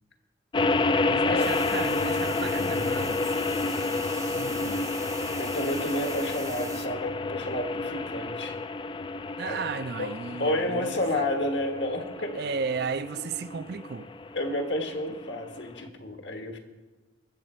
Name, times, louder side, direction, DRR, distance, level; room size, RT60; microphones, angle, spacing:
sound 1, 0.5-15.8, left 3 dB, 25° left, 0.3 m, -30 dB
voice 1, 1.0-3.3 4.3-4.9 9.4-11.3 12.3-14.1, right 5 dB, 55° right, 0.4 m, -34 dB
sound 2, 1.4-6.9, right 5 dB, 20° right, 0.7 m, -42 dB
voice 2, 5.4-8.6 9.4-9.6 10.0-10.1 10.4-12.4 14.3-16.6, left 1 dB, 65° left, 1.4 m, -30 dB
20.5 x 7.5 x 4.4 m
head